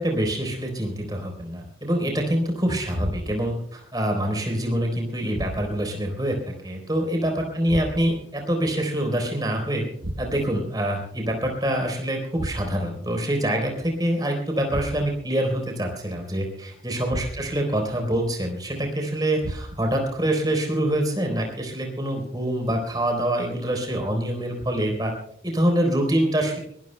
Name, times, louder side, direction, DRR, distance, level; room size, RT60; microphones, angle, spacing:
voice 1, 0.0-6.3 6.6-9.8 10.2-25.1 25.4-26.6, right 1 dB, 20° right, 2 dB, 3.8 m, -25 dB
sound 1, 3.0-3.6 5.3-6.0 7.7-8.3 10.0-10.6 12.3-13.0 14.7-15.3 17.1-17.7 19.4-20.0, right 1 dB, 60° right, 1.1 m, -34 dB
23.5 x 20.0 x 2.2 m, 0.67 s
head